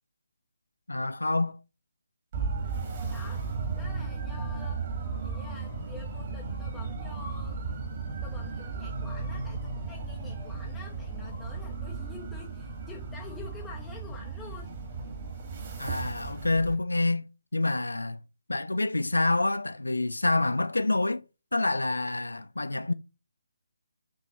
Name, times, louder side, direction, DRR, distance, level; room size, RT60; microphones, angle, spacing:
voice 1, 0.9-1.6 15.8-17.3 17.5-18.2 18.5-21.2 21.5-22.9, left 2 dB, 75° left, 0.4 m, -27 dB
sound 1, 2.3-16.7, right 4 dB, 40° right, 1.9 m, -35 dB
voice 2, 2.6-3.4 3.7-4.9 5.2-7.8 8.2-14.7, left 6 dB, 10° left, 0.9 m, -48 dB
6.9 x 3.1 x 5.5 m
figure-of-eight pair, 145°, 0 cm